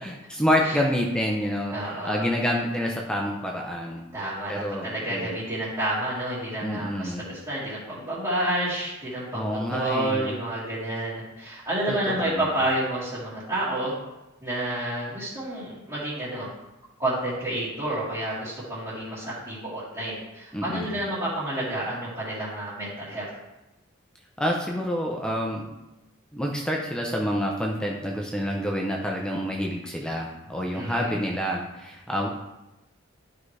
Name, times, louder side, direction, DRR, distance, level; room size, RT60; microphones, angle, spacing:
voice 1, 0.0-4.1 4.5-5.4 6.6-7.2 9.3-10.4 11.9-12.5 20.5-21.0 24.4-25.7 26.3-32.3, equal, 5° left, -1 dB, 0.6 m, -28 dB
voice 2, 1.7-2.3 4.1-13.9 14.4-16.5 17.0-23.3 30.7-31.2, right 1 dB, 20° right, -11 dB, 2.3 m, -30 dB
12.0 x 4.8 x 3.3 m, 0.98 s
head